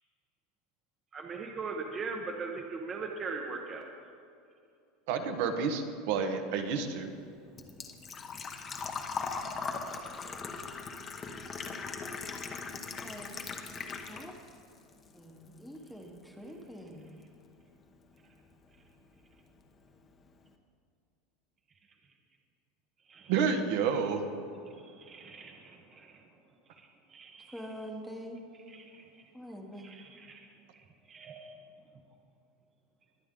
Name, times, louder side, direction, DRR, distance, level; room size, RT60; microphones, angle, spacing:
voice 1, 1.1-3.9 23.1-23.3 23.8-23.9 24.6-26.2 26.8-27.6 28.7-29.0 29.8-30.5 30.7-31.6, right 4 dB, 25° right, 2 dB, 1.0 m, -41 dB
voice 2, 5.1-7.1 23.3-24.2, right 6 dB, 65° right, 5 dB, 1.3 m, -29 dB
Engine / Trickle dribble / Fill (with liquid), 6.6-14.6 14.9-15.9 16.2-16.3 18.2-18.3 18.5-18.8 19.2-19.3 19.5-19.6, left 5 dB, 20° left, 1.0 m, -39 dB
voice 3, 13.0-13.3 14.1-14.3 15.1-17.1 27.5-28.4 29.3-29.9, equal, ahead, 2 dB, 1.2 m, -45 dB
22.0 x 8.7 x 3.8 m, 2.5 s
supercardioid pair, 160°, 0 cm